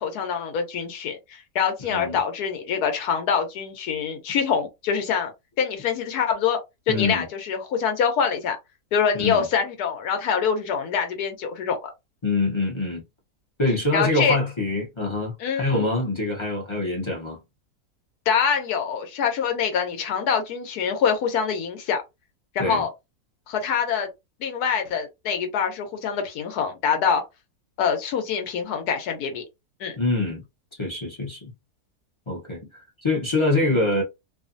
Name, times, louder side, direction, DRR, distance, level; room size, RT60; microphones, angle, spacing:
voice 1, 0.0-5.3 5.6-6.6 6.9-8.6 8.9-11.9 13.9-14.4 15.4-15.8 18.3-22.0 22.5-22.9 23.5-24.1 24.4-27.2 27.8-29.4 29.8-30.0, left 7 dB, 80° left, 1.2 m, -25 dB
voice 2, 1.8-2.2 6.9-7.2 9.1-9.5 12.2-13.0 13.6-17.4 22.6-22.9 30.0-30.4 30.8-31.5 32.3-34.0, left 2 dB, 30° left, 0.5 m, -25 dB
2.7 x 2.4 x 2.5 m
omnidirectional pair, 1.7 m